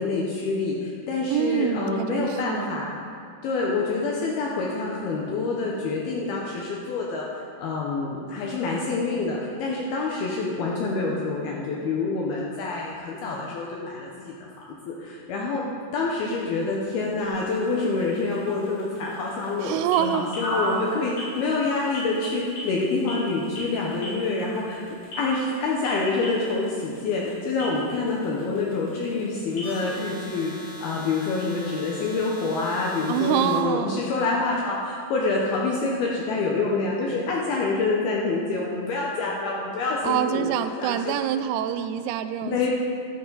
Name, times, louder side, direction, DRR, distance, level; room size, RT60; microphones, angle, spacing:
voice 1, 0.0-2.9 3.4-15.7 15.9-24.8 25.1-41.1 42.4-42.7, left 3 dB, 80° left, -3 dB, 2.2 m, -27 dB
voice 2, 1.3-2.8 16.2-16.3 19.6-20.3 33.1-34.0 40.0-42.7, right 9 dB, 90° right, 10 dB, 3.2 m, -26 dB
sound 1, 16.2-33.6, equal, 55° left, 5.3 m, -39 dB
12.0 x 11.0 x 4.0 m, 2.4 s
omnidirectional pair, 5.8 m